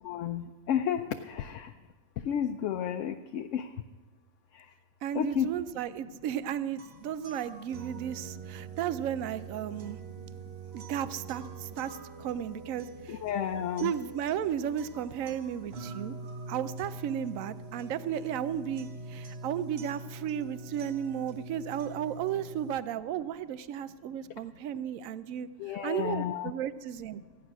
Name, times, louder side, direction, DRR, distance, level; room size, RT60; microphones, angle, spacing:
voice 1, 0.0-1.7 2.3-3.7 5.1-5.5 13.1-13.9 25.6-26.5, left 9 dB, 70° left, 7 dB, 0.8 m, -31 dB
voice 2, 5.0-10.0 10.7-13.2 13.8-16.2 16.5-27.2, right 9 dB, 75° right, 14 dB, 1.0 m, -34 dB
sound 1, 6.8-22.8, right 4 dB, 50° right, 1.1 m, -44 dB
14.5 x 9.5 x 6.0 m, 1.3 s
omnidirectional pair, 1.5 m